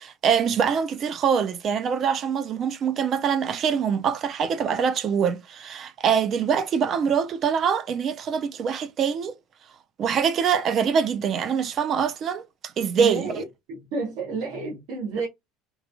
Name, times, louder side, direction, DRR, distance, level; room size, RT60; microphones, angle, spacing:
voice 1, 0.0-9.4 10.0-12.4 12.8-13.3, right 7 dB, 30° right, 0.3 m, -24 dB
voice 2, 13.0-15.3, right 4 dB, 60° right, 0.8 m, -30 dB
3.0 x 2.2 x 2.5 m
cardioid pair, 175°, 0 cm